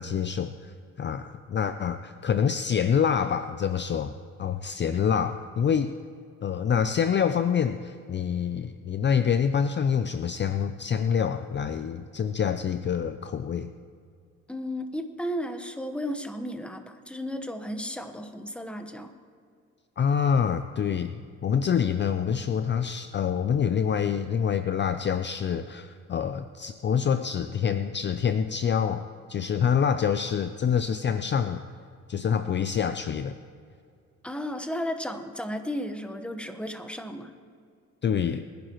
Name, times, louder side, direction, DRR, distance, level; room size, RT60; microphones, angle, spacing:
voice 1, 0.0-4.1 4.4-5.9 6.4-13.7 20.0-29.0 29.3-31.6 32.1-33.4 38.0-38.4, left 7 dB, 40° left, 10 dB, 0.5 m, -26 dB
voice 2, 14.5-19.1 34.2-37.3, equal, 5° left, 7 dB, 1.2 m, -34 dB
23.0 x 10.5 x 3.1 m, 2.2 s
cardioid pair, 90°, 30 cm